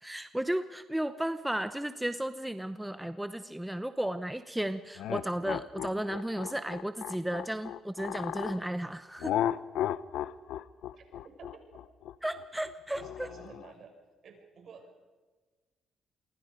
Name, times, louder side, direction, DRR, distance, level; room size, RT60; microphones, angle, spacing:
voice 1, 0.0-9.3 12.2-13.0, right 1 dB, 5° right, 11 dB, 0.8 m, -34 dB
sound 1, 5.0-8.6 9.2-13.7, left 11 dB, 85° left, 0.7 m, -34 dB
voice 2, 10.9-11.8 12.9-13.9 14.2-15.1, right 5 dB, 60° right, 4 dB, 6.1 m, -51 dB
28.0 x 23.0 x 5.2 m, 1.3 s
cardioid pair, 90°, 0 cm